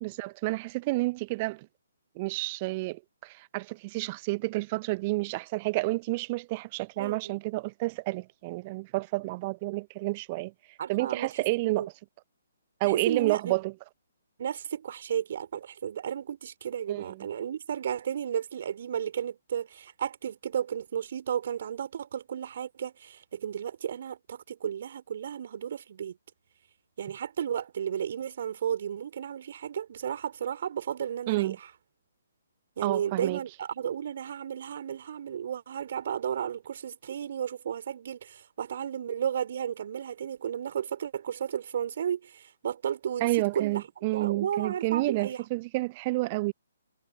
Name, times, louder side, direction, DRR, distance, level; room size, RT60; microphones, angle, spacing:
voice 1, 0.0-1.7 2.2-10.5 10.9-11.8 12.8-13.7 16.9-17.3 31.3-31.6 32.8-33.4 43.2-46.5, right 22 dB, 30° right, 0.9 m, -30 dB
voice 2, 7.0-7.4 10.8-11.3 11.6-11.9 12.8-13.6 14.4-26.2 27.0-31.7 32.8-45.5, right 9 dB, 50° right, 3.9 m, -33 dB
figure-of-eight pair, 130°, 0 cm